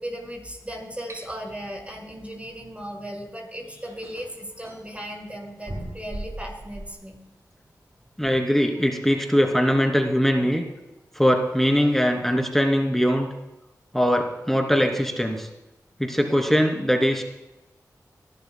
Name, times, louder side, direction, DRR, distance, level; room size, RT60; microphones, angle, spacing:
voice 1, 0.0-7.2, equal, 20° right, 0 dB, 5.4 m, -36 dB
sound 1, 1.1-1.2 3.1-3.2 3.8-4.9 5.7-6.9, right 1 dB, 45° right, 5.0 m, -37 dB
voice 2, 8.2-10.6 11.1-13.3 13.9-15.5 16.0-17.2, equal, 5° left, 2 dB, 2.9 m, -21 dB
24.5 x 12.0 x 2.3 m, 0.95 s
cardioid pair, 45°, 7 cm